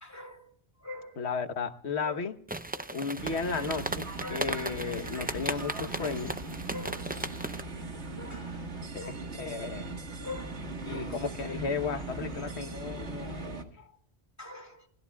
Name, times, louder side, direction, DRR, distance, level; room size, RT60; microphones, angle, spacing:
voice 1, 0.0-0.4 0.8-1.1 4.2-4.4 6.0-6.1 6.7-7.3 8.2-8.6 8.9-9.2 10.2-10.5 10.9-11.1 14.4-14.7, left 2 dB, 15° left, 2.6 m, -43 dB
voice 2, 1.2-2.4 2.9-6.4 8.9-9.9 10.9-13.7, left 5 dB, 75° left, 1.4 m, -34 dB
sound 1, 2.5-7.6, right 2 dB, 10° right, 0.4 m, -37 dB
sound 2, 3.2-13.6, right 3 dB, 90° right, 2.0 m, -39 dB
28.0 x 20.0 x 2.3 m
omnidirectional pair, 1.1 m